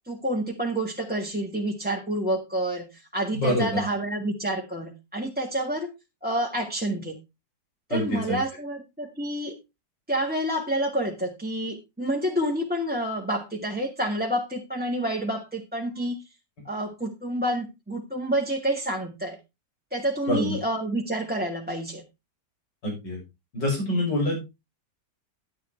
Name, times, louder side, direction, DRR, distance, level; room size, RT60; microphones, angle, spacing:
voice 1, 0.1-5.9 6.2-7.2 7.9-9.6 10.1-16.2 16.6-19.4 19.9-22.0, right 1 dB, 5° right, -1 dB, 1.7 m, -28 dB
voice 2, 3.3-3.8 7.9-8.4 20.3-20.6 22.8-23.2 23.5-24.5, left 1 dB, 85° left, 0 dB, 7.2 m, -26 dB
11.0 x 10.5 x 3.4 m, 0.24 s
omnidirectional pair, 1.9 m